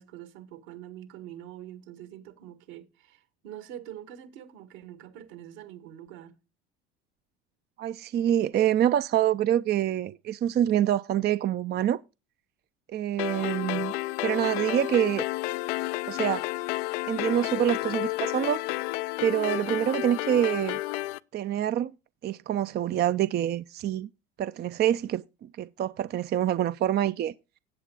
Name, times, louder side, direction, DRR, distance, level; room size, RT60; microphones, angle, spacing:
voice 1, 0.0-6.4, right 11 dB, 75° right, 1.8 m, -45 dB
voice 2, 7.8-12.0 12.9-13.9 14.2-15.2 16.1-16.5 17.1-18.6 19.2-20.8 21.3-21.9 22.2-24.1 24.4-27.3, right 11 dB, 35° right, 0.4 m, -26 dB
sound 1, 13.2-21.2, left 19 dB, 80° left, 0.5 m, -31 dB
17.5 x 8.1 x 2.4 m
supercardioid pair, 90°, 31 cm